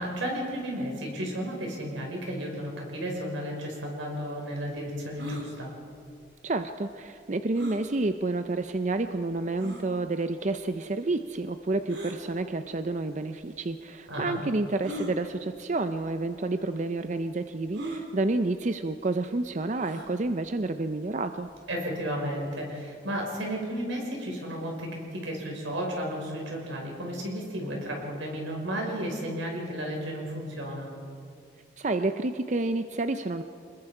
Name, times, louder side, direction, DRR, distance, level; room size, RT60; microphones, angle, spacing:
voice 1, 0.0-5.7 14.1-14.4 21.7-30.9, equal, 85° right, 0 dB, 5.3 m, -33 dB
sound 1, 5.2-5.5 7.6-7.8 8.6-8.7 9.6-9.9 11.9-12.2 13.3-13.4 14.8-15.1 16.0-16.2 16.5-16.6 17.7-18.1 19.8-20.1, right 1 dB, 70° right, 3.1 m, -37 dB
voice 2, 6.4-21.5 31.8-33.4, right 2 dB, 40° right, 9 dB, 0.5 m, -29 dB
26.0 x 21.0 x 4.9 m, 2.4 s
head